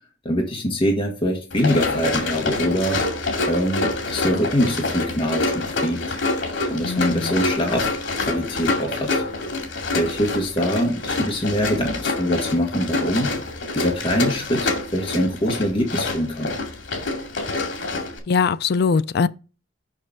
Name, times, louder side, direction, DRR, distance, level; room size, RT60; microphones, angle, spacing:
voice 1, 0.2-3.0 3.5-6.0 6.7-7.9 8.2-9.2 9.9-16.6, equal, 30° left, 1.5 m, -24 dB
Run, 1.5-18.2, left 3 dB, 85° left, 2.2 m, -26 dB
voice 2, 6.8-7.4 18.3-19.3, left 5 dB, 55° left, 0.4 m, -21 dB
6.5 x 5.9 x 3.7 m
head